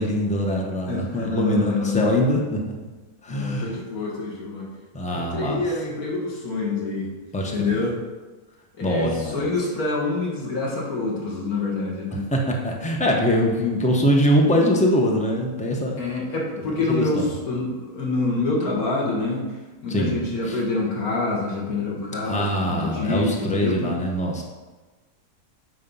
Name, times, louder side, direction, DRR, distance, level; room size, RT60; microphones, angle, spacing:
voice 1, 0.0-2.7 3.2-3.7 4.9-5.6 7.3-7.8 8.8-9.5 12.3-16.0 16.6-17.3 19.9-20.2 20.4-20.6 22.2-24.4, equal, 5° left, 0 dB, 0.8 m, -23 dB
voice 2, 0.9-2.1 3.3-4.7 5.1-7.1 7.5-8.0 8.8-12.3 15.9-19.4 19.8-23.9, left 3 dB, 70° left, -3 dB, 2.2 m, -26 dB
7.5 x 4.4 x 5.5 m, 1.2 s
omnidirectional pair, 1.6 m